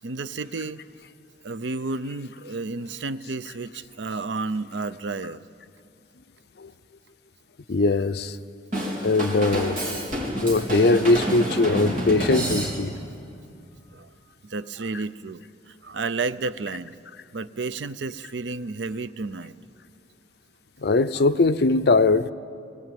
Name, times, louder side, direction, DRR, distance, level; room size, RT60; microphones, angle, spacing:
voice 1, 0.0-0.8 1.4-5.4 13.9-14.1 14.4-17.0 17.3-19.5 21.1-21.3, right 3 dB, 80° right, 0.6 m, -31 dB
voice 2, 7.7-8.4 9.0-9.8 10.4-12.9 20.8-22.3, left 3 dB, 60° left, 0.6 m, -20 dB
Drum kit / Drum, 8.7-13.1, equal, 45° right, 4.0 m, -28 dB
19.5 x 18.5 x 9.3 m
head